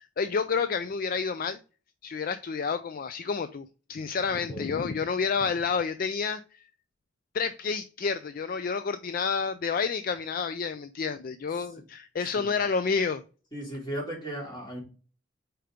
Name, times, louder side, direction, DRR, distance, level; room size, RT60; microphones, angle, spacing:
voice 1, 0.0-1.6 2.0-6.4 7.3-13.2, left 5 dB, 45° left, 0.4 m, -29 dB
voice 2, 4.3-4.7 12.3-12.6 13.5-14.8, right 1 dB, 20° left, 2.9 m, -36 dB
5.1 x 4.5 x 5.0 m
head